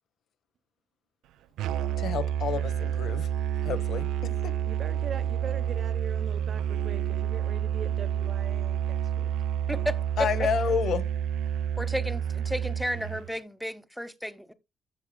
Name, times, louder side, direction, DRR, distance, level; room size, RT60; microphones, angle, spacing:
Musical instrument, 1.6-13.3, right 9 dB, 85° right, 0.4 m, -29 dB
voice 1, 2.0-3.3 3.6-4.5 10.2-11.0, left 7 dB, 70° left, 1.0 m, -30 dB
voice 2, 4.7-9.3, right 7 dB, 55° right, 0.8 m, -41 dB
voice 3, 9.7-10.0 11.8-14.5, equal, ahead, 1.0 m, -33 dB
14.5 x 6.0 x 2.3 m
cardioid pair, 90°, 0 cm